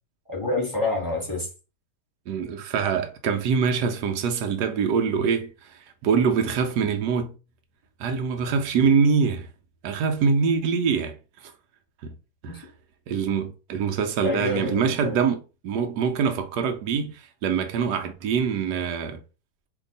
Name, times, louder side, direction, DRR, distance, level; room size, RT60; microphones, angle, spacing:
voice 1, 0.3-1.5 12.5-12.6 14.2-15.1, left 2 dB, 15° left, 1.4 m, -27 dB
voice 2, 2.3-7.3 8.0-9.5 9.8-11.5 12.0-12.1 12.4-12.7 13.1-19.2, right 6 dB, 85° right, 1.2 m, -24 dB
2.9 x 2.7 x 3.8 m
omnidirectional pair, 1.8 m